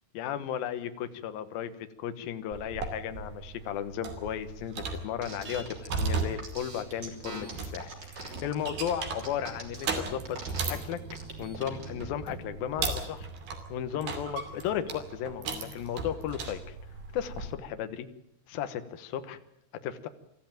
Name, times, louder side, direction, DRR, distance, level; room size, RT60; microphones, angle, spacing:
voice 1, 0.1-10.4 10.7-11.0 11.4-13.3 13.7-16.8 17.1-18.1 18.5-19.4 19.8-20.1, left 9 dB, 70° left, 9 dB, 2.8 m, -35 dB
sound 1, 2.5-17.6, right 4 dB, 70° right, 4.5 m, -37 dB
sound 2, 5.2-11.9, right 2 dB, 30° right, 3.7 m, -42 dB
sound 3, 6.0-12.5, right 2 dB, 50° right, 9.0 m, -51 dB
24.5 x 14.5 x 9.0 m, 0.78 s
omnidirectional pair, 4.6 m